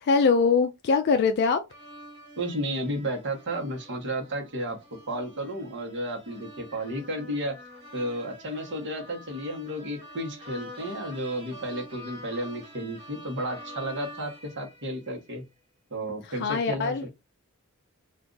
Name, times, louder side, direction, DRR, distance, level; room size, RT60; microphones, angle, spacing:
voice 1, 0.0-1.6 16.2-17.0, left 5 dB, 50° left, 0.3 m, -23 dB
sound 1, 1.7-15.4, equal, 25° right, 1.1 m, -46 dB
voice 2, 2.4-4.8 5.1-7.6 7.9-15.4 15.9-17.1, right 1 dB, 55° right, 1.1 m, -32 dB
2.5 x 2.4 x 3.7 m
head